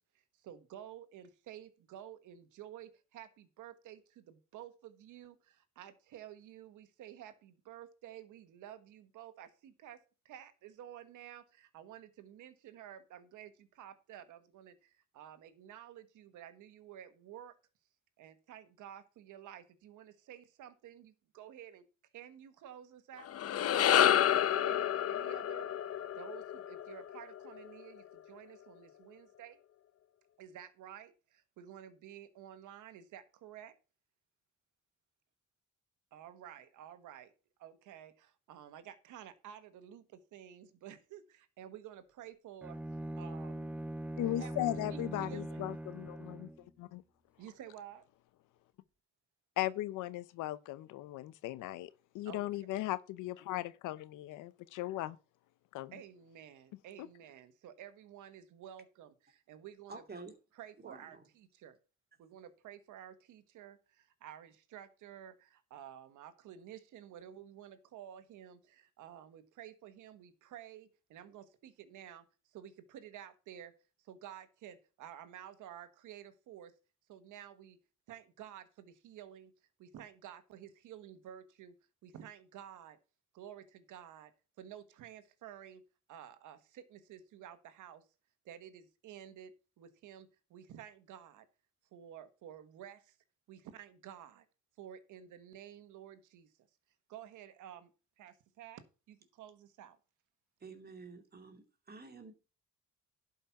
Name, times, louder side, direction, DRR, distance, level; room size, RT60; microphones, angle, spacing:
voice 1, 0.4-10.0 10.2-17.5 18.2-21.8 22.1-23.3 24.3-25.7 26.1-29.6 30.4-33.7 36.1-37.3 37.6-42.8 43.2-43.7 44.4-44.5 44.9-45.6 47.4-48.0 52.2-52.4 55.9-60.0 60.6-61.7 62.2-72.2 72.5-73.7 74.1-76.7 77.1-77.8 78.1-79.5 79.8-81.7 82.0-83.0 83.3-84.3 84.6-85.8 86.1-88.0 88.4-91.4 91.9-93.1 93.5-94.4 94.8-96.5 97.1-97.9 98.2-100.0, right 10 dB, 85° right, 1.4 m, -52 dB
sound 1, 23.2-27.7, left 10 dB, 50° left, 0.7 m, -29 dB
Bowed string instrument, 42.6-46.7, right 1 dB, 5° right, 0.4 m, -41 dB
voice 2, 44.2-47.0 49.6-51.9 52.1-55.2 55.7-55.9 57.0-57.1, left 15 dB, 90° left, 0.7 m, -37 dB
voice 3, 59.9-60.3 60.8-61.2 100.6-102.3, right 3 dB, 30° right, 2.4 m, -50 dB
11.5 x 5.5 x 5.8 m
cardioid pair, 90°, 30 cm